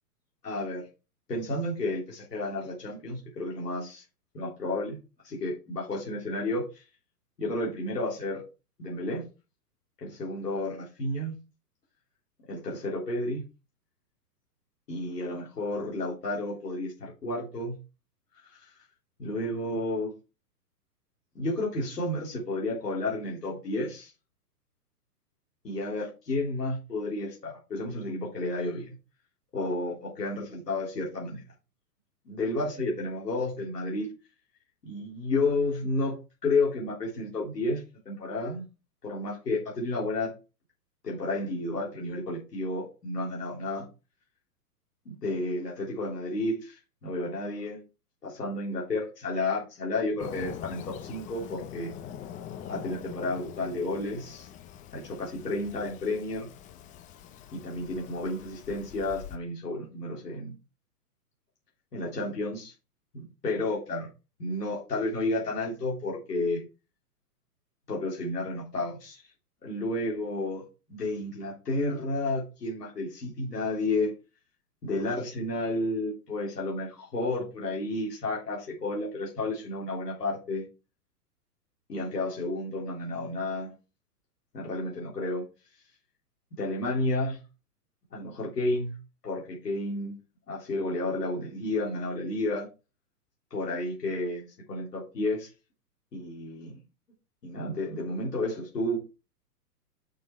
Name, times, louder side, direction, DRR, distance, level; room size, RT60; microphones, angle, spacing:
voice 1, 0.4-0.8 1.3-4.0 4.3-5.0 5.2-6.8 7.4-8.4 8.8-9.2 10.0-11.3 12.5-13.4 14.9-17.7 18.4-18.8 19.2-20.1 21.4-24.1 25.6-29.0 29.5-31.4 32.3-34.1 34.8-38.6 39.0-40.3 41.0-43.8 45.1-47.8 48.2-51.9 52.7-54.5 54.9-56.5 57.5-60.5 61.9-62.7 63.1-64.1 64.4-66.6 67.9-69.2 69.6-74.1 74.8-80.7 81.9-83.7 84.5-85.5 86.5-87.4 88.1-89.0 89.2-90.2 90.5-92.7 93.5-95.5 96.1-96.8 97.4-99.0, left 2 dB, 80° left, -4 dB, 3.7 m, -31 dB
Fireworks, 50.2-59.4, left 10 dB, 15° left, 0.6 m, -44 dB
6.8 x 6.4 x 4.7 m, 0.30 s
hypercardioid pair, 120°, 48 cm